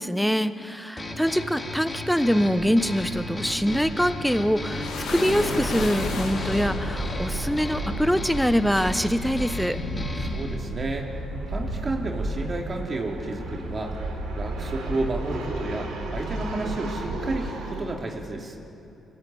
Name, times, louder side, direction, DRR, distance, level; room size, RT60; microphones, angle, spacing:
voice 1, 0.0-9.8, equal, ahead, 12 dB, 1.2 m, -24 dB
sound 1, 1.0-10.6, left 2 dB, 30° left, 4.0 m, -36 dB
sound 2, 2.6-17.8, right 2 dB, 80° right, 3.9 m, -35 dB
sound 3, 4.3-14.7, left 2 dB, 70° left, 3.4 m, -34 dB
voice 2, 10.2-11.2 11.5-14.1 14.3-18.6, right 2 dB, 45° right, 1 dB, 3.1 m, -31 dB
25.0 x 15.0 x 8.6 m, 2.7 s
hypercardioid pair, 45°, 0 cm